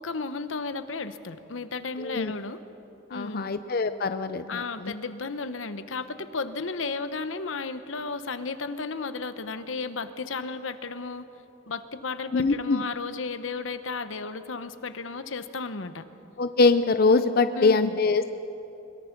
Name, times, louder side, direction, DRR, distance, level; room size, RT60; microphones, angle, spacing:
voice 1, 0.0-2.6 3.1-3.5 4.5-11.2 11.7-16.0 17.5-18.0, left 4 dB, 90° left, 11 dB, 1.0 m, -34 dB
voice 2, 2.0-2.3 3.1-4.9 12.3-12.8 16.4-18.3, left 3 dB, 50° left, 10 dB, 0.6 m, -23 dB
22.0 x 21.5 x 6.0 m, 2.8 s
head